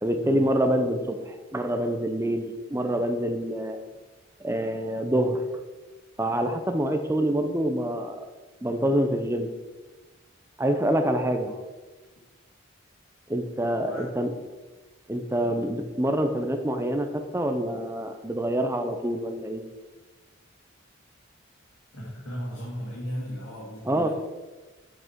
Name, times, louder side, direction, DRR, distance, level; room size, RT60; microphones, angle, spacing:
voice 1, 0.0-3.8 4.4-5.4 6.2-8.3 8.6-9.5 10.6-11.5 13.3-14.3 15.1-19.6 23.9-24.1, right 1 dB, 15° right, 6 dB, 0.6 m, -26 dB
voice 2, 21.9-24.1, equal, 90° left, -5 dB, 2.0 m, -36 dB
7.9 x 6.5 x 4.5 m, 1.2 s
head